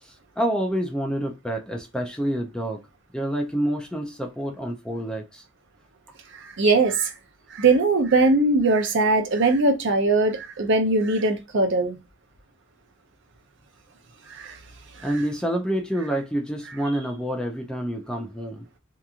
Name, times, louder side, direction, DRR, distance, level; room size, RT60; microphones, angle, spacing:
voice 1, 0.0-2.8 3.1-5.4 15.0-18.7, right 1 dB, 5° left, 0.4 m, -28 dB
voice 2, 6.4-7.1 7.5-12.0 14.3-14.6, right 3 dB, 60° right, 0.6 m, -20 dB
2.8 x 2.4 x 2.4 m
head